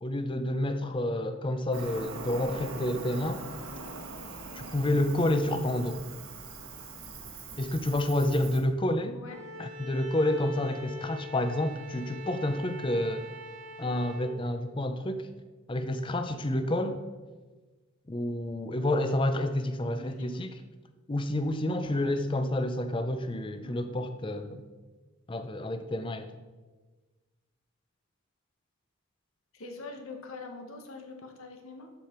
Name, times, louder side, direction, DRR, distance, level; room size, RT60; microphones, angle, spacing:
voice 1, 0.0-3.4 4.5-6.0 7.6-9.2 9.6-13.2 13.8-15.3 15.7-16.9 18.1-20.5 21.1-24.6 25.3-26.3, left 1 dB, 25° left, 9 dB, 0.5 m, -29 dB
Cricket, 1.7-8.6, right 3 dB, 80° right, 1.4 m, -42 dB
Bowed string instrument, 9.3-14.3, left 2 dB, 60° right, 1.3 m, -43 dB
voice 2, 20.0-20.4 23.6-24.0 29.5-31.9, left 3 dB, 75° left, 4 dB, 1.2 m, -44 dB
12.5 x 5.0 x 4.4 m, 1.3 s
head